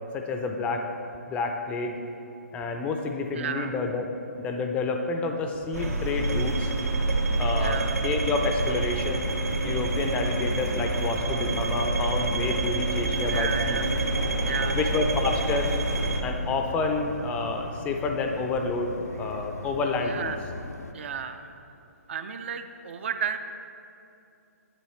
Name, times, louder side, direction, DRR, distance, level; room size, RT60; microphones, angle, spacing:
voice 1, 0.1-0.9 1.3-2.0 2.5-4.1 4.4-6.7 7.4-9.3 9.6-13.8 14.7-15.7 16.2-18.9 19.2-20.3, left 3 dB, 15° left, 4 dB, 0.4 m, -29 dB
voice 2, 3.3-3.8 7.6-8.0 13.3-13.9 14.4-14.8 20.0-20.4 20.9-21.5 22.1-23.4, right 7 dB, 50° right, 8 dB, 0.5 m, -33 dB
sound 1, 5.7-16.2, right 2 dB, 70° right, 0.8 m, -27 dB
sound 2, 9.7-20.9, left 3 dB, 75° left, 0.5 m, -39 dB
7.9 x 7.6 x 3.2 m, 2.6 s
figure-of-eight pair, 135°, 9 cm